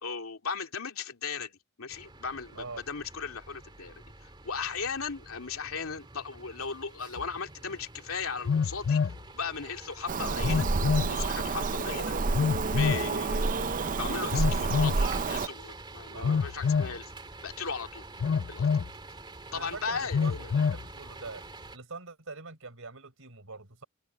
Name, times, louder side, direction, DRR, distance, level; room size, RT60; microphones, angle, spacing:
voice 1, 0.0-3.9 4.2-9.0 9.3-10.7 11.1-12.1 12.8-13.7 14.0-17.0 17.4-18.0 18.5-18.7 19.5-20.5, left 5 dB, 80° left, 2.6 m, -37 dB
sound 1, 1.9-21.8, right 3 dB, 20° right, 2.4 m, -47 dB
Telephone, 7.2-7.3 8.4-9.2 10.4-11.1 12.3-13.1 14.3-15.0 16.2-17.0 18.2-18.9 20.1-20.8, left 5 dB, 55° left, 0.4 m, -27 dB
Bird vocalization bird call bird song, 10.1-15.5, right 3 dB, 40° right, 0.6 m, -29 dB
voice 2, 16.1-16.5 19.5-21.4 21.7-23.8, right 3 dB, 70° right, 5.5 m, -43 dB
head